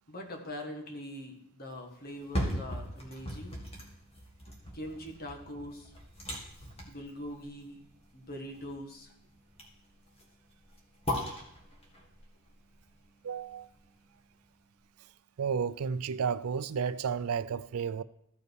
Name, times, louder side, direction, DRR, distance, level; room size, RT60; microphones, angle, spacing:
voice 1, 0.1-3.6 4.7-5.9 6.9-7.8 8.1-9.1, left 1 dB, 45° left, 1.7 m, -42 dB
sound 1, 2.0-14.1 14.5-14.6, equal, 30° left, 1.9 m, -40 dB
voice 2, 13.2-13.7 15.4-18.0, right 6 dB, 85° right, 0.4 m, -32 dB
14.5 x 5.4 x 4.7 m
head